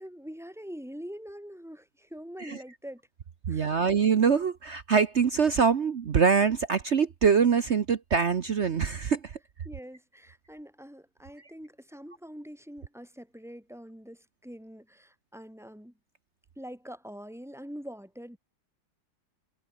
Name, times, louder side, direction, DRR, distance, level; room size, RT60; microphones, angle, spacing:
voice 1, 0.0-3.0 3.5-3.9 9.7-15.9 16.6-18.4, equal, ahead, 7.3 m, -44 dB
voice 2, 3.5-9.3, right 6 dB, 45° right, 1.0 m, -24 dB
omnidirectional pair, 2.0 m